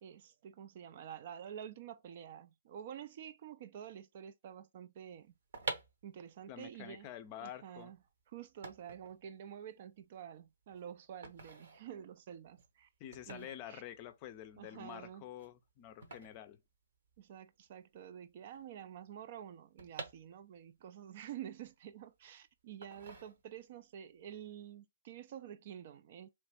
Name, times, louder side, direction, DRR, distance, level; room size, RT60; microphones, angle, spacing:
voice 1, 0.0-5.3 6.0-7.1 7.4-8.0 8.3-12.9 13.3-13.8 14.6-15.2 17.2-26.3, right 9 dB, 45° right, 0.4 m, -49 dB
sound 1, 5.3-17.4 17.7-17.8 17.9-20.8 21.2-22.3 22.8-23.8 24.2-24.4, right 4 dB, 60° right, 0.9 m, -49 dB
voice 2, 6.5-7.9 13.0-16.6, left 11 dB, 30° left, 0.5 m, -48 dB
3.1 x 2.4 x 3.4 m
figure-of-eight pair, 135°, 0 cm